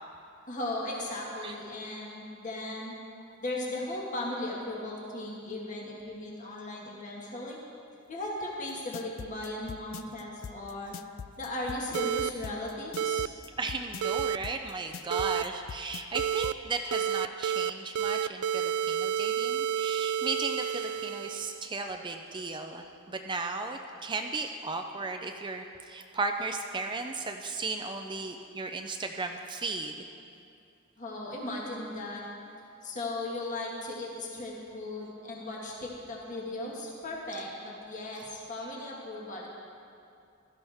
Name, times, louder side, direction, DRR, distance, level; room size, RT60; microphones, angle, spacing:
voice 1, 0.5-3.0 3.4-7.6 8.1-11.0 11.4-13.2 31.0-32.2 32.8-39.5, left 2 dB, 35° left, -3 dB, 1.8 m, -37 dB
sound 1, 8.7-16.6, left 7 dB, 65° left, 0.4 m, -42 dB
sound 2, 11.9-12.3 13.0-13.3 14.0-14.4 15.1-15.4 16.1-16.5 16.9-17.7 17.9-21.7, right 9 dB, 90° right, 0.3 m, -30 dB
voice 2, 13.6-30.0, right 3 dB, 20° right, 4 dB, 0.5 m, -35 dB
16.5 x 13.0 x 3.5 m, 2.5 s
head